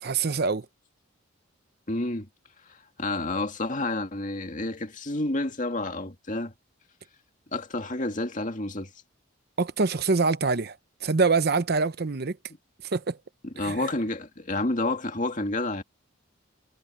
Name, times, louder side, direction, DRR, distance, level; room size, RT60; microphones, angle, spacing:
voice 1, 0.0-0.7 9.6-10.8 11.0-12.4 12.9-13.2 13.6-13.8, right 4 dB, 50° right, 0.8 m, -25 dB
voice 2, 1.9-2.3 2.7-6.5 7.5-8.9 13.4-15.8, left 2 dB, 40° left, 2.2 m, -29 dB
head